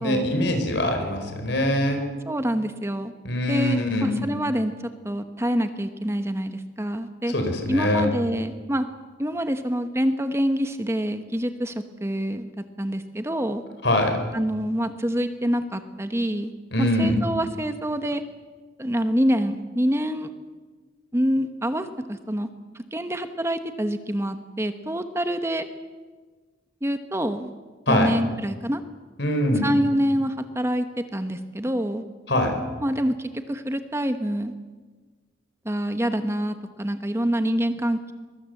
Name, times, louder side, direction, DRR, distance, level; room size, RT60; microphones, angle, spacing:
voice 1, 0.0-2.0 3.2-4.2 7.3-8.1 13.8-14.2 16.7-17.2 27.9-28.1 29.2-29.7 32.3-32.6, left 1 dB, 65° left, 5 dB, 4.5 m, -23 dB
voice 2, 2.3-3.1 3.5-7.3 7.7-8.9 9.2-13.6 14.3-16.5 16.8-18.2 18.8-20.3 21.1-22.5 22.7-25.7 26.8-27.5 27.9-28.8 29.6-32.0 32.8-34.5 35.6-38.1, equal, 15° right, 8 dB, 1.0 m, -26 dB
23.0 x 21.5 x 7.8 m, 1.4 s
head